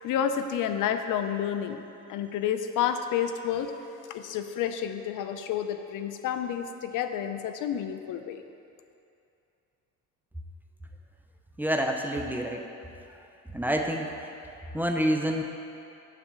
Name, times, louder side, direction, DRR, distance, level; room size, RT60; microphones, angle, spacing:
voice 1, 0.0-3.7 4.1-8.4, left 9 dB, 70° left, 8 dB, 0.7 m, -30 dB
voice 2, 11.6-12.7 13.1-13.2 13.5-14.3 14.7-15.4, equal, 5° right, 2 dB, 0.7 m, -28 dB
7.5 x 6.5 x 7.4 m, 2.7 s
cardioid pair, 110°, 33 cm